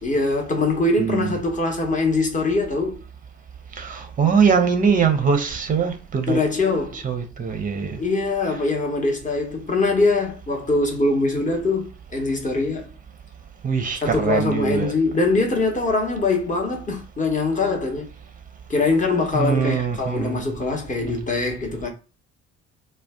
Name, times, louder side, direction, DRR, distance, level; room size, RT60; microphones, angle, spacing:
voice 1, 0.0-3.0 6.3-7.0 8.0-12.9 14.0-18.1 18.7-21.9, left 3 dB, 20° left, 1.0 m, -22 dB
voice 2, 1.0-1.3 3.8-6.4 7.0-8.0 13.6-14.9 19.3-20.4, right 6 dB, 20° right, 0.7 m, -22 dB
2.4 x 2.2 x 3.5 m
figure-of-eight pair, 50°, 39 cm